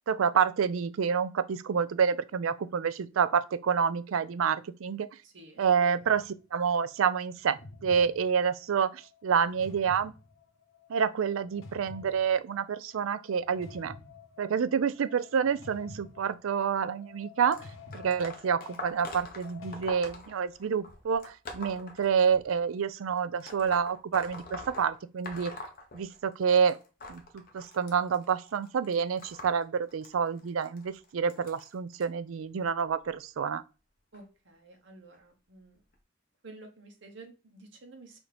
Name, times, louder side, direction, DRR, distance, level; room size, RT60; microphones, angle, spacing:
voice 1, 0.1-5.1 5.6-10.1 10.9-14.0 14.4-17.7 17.9-25.5 25.9-26.8 27.1-33.6, right 6 dB, 85° right, 0.4 m, -28 dB
sound 1, 6.0-6.4 7.4-19.9, left 3 dB, 80° left, 1.0 m, -50 dB
sound 2, 17.5-22.6 23.4-26.4 26.7-32.0 32.8-33.1 34.1-34.2 35.1-35.2 35.9-36.0, left 2 dB, 45° left, 0.9 m, -44 dB
voice 2, 34.1-35.8 36.4-38.2, right 2 dB, 60° right, 1.0 m, -51 dB
5.8 x 2.7 x 3.3 m
head